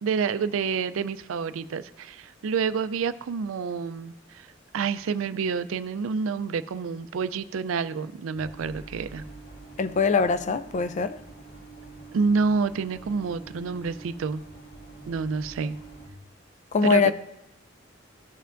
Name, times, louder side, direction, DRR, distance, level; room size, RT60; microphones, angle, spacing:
voice 1, 0.0-4.5 4.7-9.2 12.1-14.4 15.1-15.8 16.8-17.1, right 5 dB, 80° right, 0.4 m, -28 dB
sound 1, 8.3-16.1, right 3 dB, 55° left, 1.8 m, -46 dB
voice 2, 9.8-11.2 16.7-17.1, left 4 dB, 35° left, 0.3 m, -22 dB
14.5 x 5.6 x 2.5 m
head